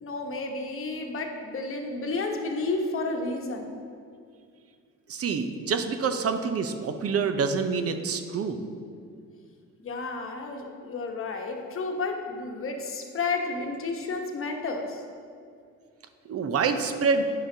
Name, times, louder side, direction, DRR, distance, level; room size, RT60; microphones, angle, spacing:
voice 1, 0.0-3.7 9.8-15.0, left 3 dB, 45° left, 3 dB, 1.0 m, -31 dB
voice 2, 5.1-8.6 16.3-17.2, right 5 dB, 50° right, 8 dB, 0.7 m, -27 dB
10.0 x 5.7 x 2.8 m, 2.3 s
cardioid pair, 90°, 30 cm